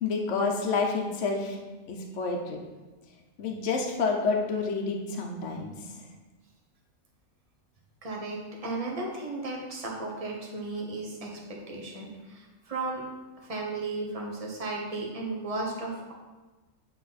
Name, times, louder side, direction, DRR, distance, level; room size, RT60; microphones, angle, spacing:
voice 1, 0.0-1.6 1.9-2.6 3.4-5.7, left 4 dB, 60° left, 1 dB, 1.1 m, -29 dB
voice 2, 8.0-13.0 13.4-16.1, right 2 dB, 30° right, -1 dB, 1.1 m, -35 dB
8.5 x 3.6 x 4.1 m, 1.2 s
omnidirectional pair, 1.4 m